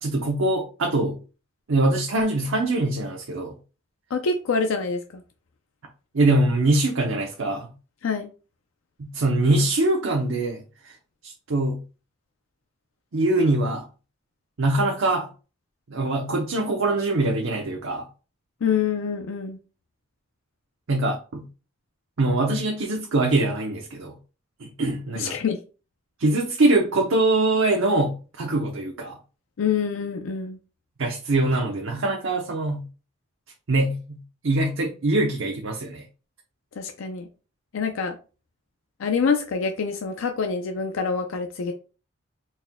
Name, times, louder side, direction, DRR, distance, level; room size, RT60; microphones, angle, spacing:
voice 1, 0.0-1.2 1.7-3.5 6.1-7.7 9.0-10.9 11.2-11.8 13.1-13.8 14.6-15.3 15.9-18.1 20.9-21.5 22.2-24.1 24.6-25.4 26.2-29.2 31.0-32.9 33.7-36.0, right 2 dB, 80° right, 0.6 m, -23 dB
voice 2, 4.1-5.2 8.0-8.3 18.6-19.6 25.2-25.6 29.6-30.6 36.8-37.3 37.7-38.2 39.0-41.7, left 5 dB, 80° left, 0.4 m, -26 dB
4.2 x 2.2 x 3.5 m
head